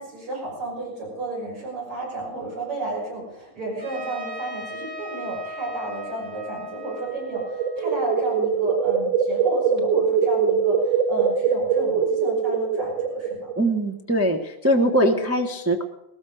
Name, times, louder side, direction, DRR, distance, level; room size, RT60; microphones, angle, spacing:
voice 1, 0.0-13.9, right 2 dB, 85° right, -3 dB, 6.9 m, -33 dB
Trumpet, 3.8-8.6, equal, 70° right, 5.3 m, -38 dB
sound 1, 7.1-13.6, right 6 dB, 45° right, 1.8 m, -23 dB
voice 2, 13.6-15.8, right 1 dB, 20° right, 2 dB, 0.4 m, -21 dB
18.5 x 13.5 x 4.9 m, 0.83 s
omnidirectional pair, 2.4 m